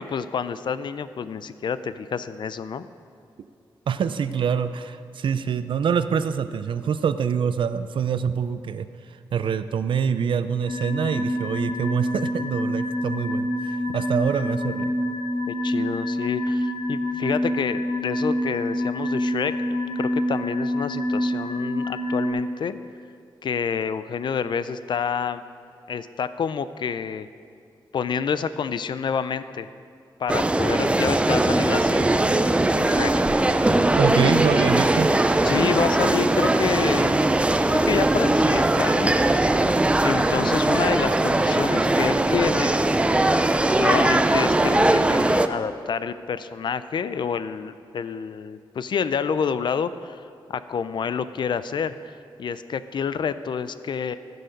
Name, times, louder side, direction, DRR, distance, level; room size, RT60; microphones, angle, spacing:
voice 1, 0.0-2.9 15.5-22.8 23.4-25.4 25.9-27.3 27.9-29.7 30.2-32.0 32.8-33.3 34.1-34.4 35.4-37.1 37.7-39.2 40.0-42.8 43.7-50.2 50.5-54.2, left 6 dB, 65° left, 13 dB, 0.4 m, -28 dB
voice 2, 3.9-8.9 9.3-14.9 34.0-35.1, right 7 dB, 70° right, 12 dB, 0.5 m, -25 dB
sound 1, 10.7-22.3, equal, 90° left, 3.0 m, -27 dB
sound 2, 30.3-45.5, right 2 dB, 15° right, 0.4 m, -20 dB
15.5 x 6.7 x 5.1 m, 2.3 s
wide cardioid pair, 115°, 9 cm